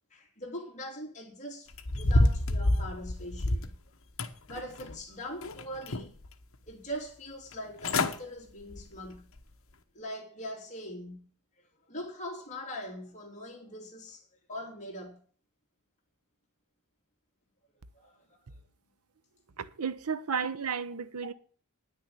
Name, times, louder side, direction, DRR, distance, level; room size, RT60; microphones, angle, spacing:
voice 1, 0.1-3.8 4.5-6.1 6.7-9.3 9.9-11.3 11.9-15.2 17.9-18.4, equal, 35° left, 3.1 m, -42 dB
sound 1, 1.7-3.8 4.2-5.0 5.4-6.3 6.7-6.8 7.5-7.6 7.8-8.2 8.6-8.9 9.4-9.5, left 1 dB, 65° left, 1.1 m, -28 dB
voice 2, 19.6-21.3, right 6 dB, 85° right, 0.8 m, -33 dB
10.0 x 6.5 x 8.7 m
head